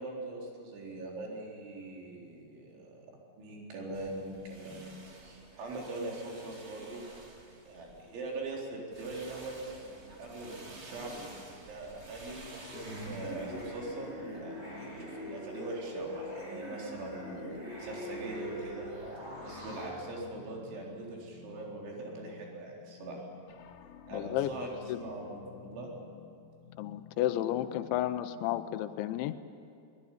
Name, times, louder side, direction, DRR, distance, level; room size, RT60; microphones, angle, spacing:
voice 1, 0.0-3.1 3.4-7.0 7.7-12.4 13.0-14.1 14.4-17.5 17.8-18.9 19.4-23.2 24.1-24.7 25.0-25.9, right 2 dB, 85° right, -2 dB, 6.3 m, -42 dB
sound 1, 3.9-8.6 8.9-13.8, right 2 dB, 65° right, 0.6 m, -51 dB
sound 2, 12.7-19.9, equal, 15° right, 7.1 m, -42 dB
sound 3, 19.1-29.1, left 7 dB, 70° left, 3.3 m, -53 dB
voice 2, 24.1-24.5 24.9-25.0 26.8-29.3, left 13 dB, 85° left, 11 dB, 3.2 m, -32 dB
22.0 x 21.0 x 10.0 m, 2.5 s
omnidirectional pair, 5.2 m